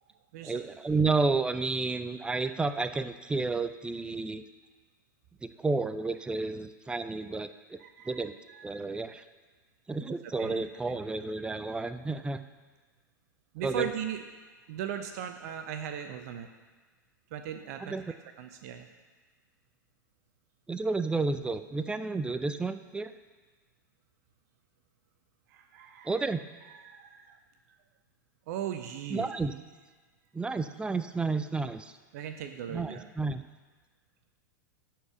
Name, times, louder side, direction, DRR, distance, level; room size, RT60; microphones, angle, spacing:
voice 1, 0.4-4.4 5.4-7.8 8.1-8.3 8.6-9.2 9.9-12.4 13.6-13.9 17.8-18.0 20.7-23.1 26.1-26.4 29.1-29.5 30.3-31.9 32.7-33.4, right 3 dB, 10° right, 11 dB, 0.4 m, -31 dB
voice 2, 7.8-8.8 10.1-11.0 13.5-14.2 14.7-16.5 17.3-18.0 18.4-18.9 25.5-26.3 26.6-27.4 28.5-29.3 32.1-33.1, right 9 dB, 50° right, 7 dB, 0.8 m, -38 dB
11.0 x 4.7 x 6.8 m, 1.4 s
figure-of-eight pair, 95°, 11 cm